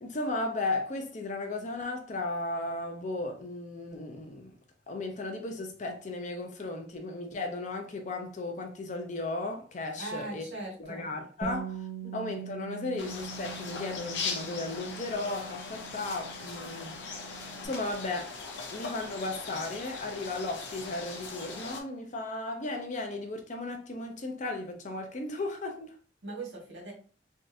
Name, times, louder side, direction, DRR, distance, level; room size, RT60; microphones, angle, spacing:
voice 1, 0.0-4.6 4.9-10.5 10.8-11.8 12.1-17.0 17.6-18.3 18.7-25.9, left 2 dB, 40° left, 0.5 m, -35 dB
voice 2, 10.0-11.1 12.0-12.1 26.2-26.9, right 2 dB, 90° right, 1.6 m, -40 dB
Bass guitar, 11.4-17.7, right 5 dB, 20° right, 0.5 m, -43 dB
sound 1, 13.0-21.8, left 4 dB, 85° left, 0.7 m, -40 dB
3.5 x 2.5 x 2.6 m
head